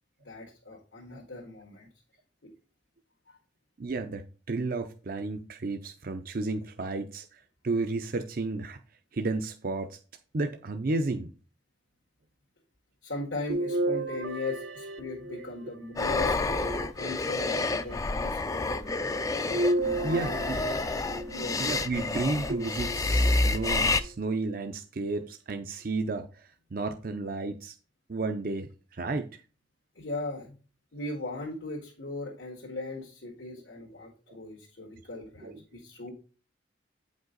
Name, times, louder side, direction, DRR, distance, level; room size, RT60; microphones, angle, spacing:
voice 1, 0.2-1.9 2.4-2.5 3.3-3.4 13.0-16.6 17.0-19.1 19.7-20.6 21.3-21.7 29.9-30.6 30.9-36.1, left 2 dB, 85° left, 1.7 m, -39 dB
voice 2, 3.8-8.8 9.1-10.0 10.3-11.3 20.0-20.6 21.6-27.7 28.1-29.4 34.3-34.4 35.1-35.6, right 3 dB, 50° right, 0.6 m, -32 dB
sound 1, 13.5-15.8 16.5-17.5 19.5-21.6 22.5-23.4 24.0-24.1 25.5-25.6, right 1 dB, 75° right, 0.8 m, -32 dB
sound 2, 16.0-24.0, left 2 dB, 20° left, 0.4 m, -29 dB
8.9 x 5.3 x 3.9 m
head